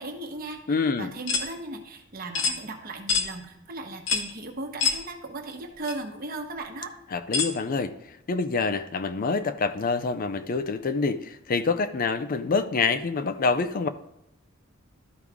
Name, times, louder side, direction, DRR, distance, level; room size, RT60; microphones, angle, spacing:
voice 1, 0.0-6.9, right 2 dB, 45° right, 1.1 m, -37 dB
voice 2, 0.7-1.1 7.1-7.9 8.3-13.9, left 4 dB, 45° left, 0.4 m, -26 dB
sound 1, 1.3-1.5 2.3-2.6 3.1-3.3 4.1-4.3 4.8-5.0 5.8-5.9 7.3-7.5, left 5 dB, 65° left, 1.0 m, -25 dB
12.0 x 4.8 x 3.6 m
head